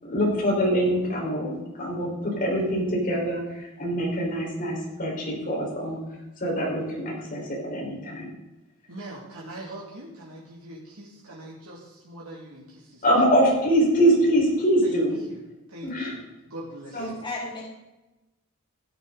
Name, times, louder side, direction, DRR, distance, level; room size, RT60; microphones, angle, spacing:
voice 1, 0.0-1.5 1.8-6.0 6.4-8.3 13.0-15.2 15.8-16.1 16.9-17.1, equal, 40° left, -3 dB, 4.6 m, -24 dB
voice 2, 8.9-13.3 14.8-15.4 15.7-17.2, right 1 dB, 85° right, -4 dB, 2.5 m, -42 dB
voice 3, 17.0-17.6, left 2 dB, 20° left, -4 dB, 2.9 m, -34 dB
16.0 x 9.7 x 4.0 m, 1.0 s
head